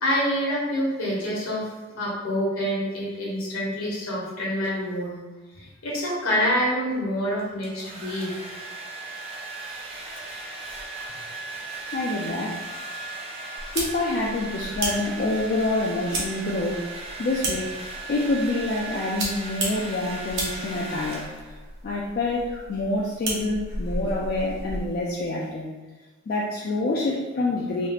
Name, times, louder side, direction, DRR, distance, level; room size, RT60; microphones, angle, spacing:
voice 1, 0.0-1.7 2.0-5.2 5.5-8.5, equal, 75° left, -5 dB, 1.1 m, -27 dB
Domestic sounds home sounds, 7.4-21.7, right 2 dB, 25° right, 0.5 m, -37 dB
voice 2, 11.9-12.6 13.7-16.9 17.2-17.7 18.1-21.2 21.8-25.7 26.3-27.9, left 2 dB, 40° left, -4 dB, 0.3 m, -27 dB
sound 1, 13.6-25.0, right 1 dB, 55° right, 0.8 m, -34 dB
3.2 x 2.4 x 2.9 m, 1.2 s
head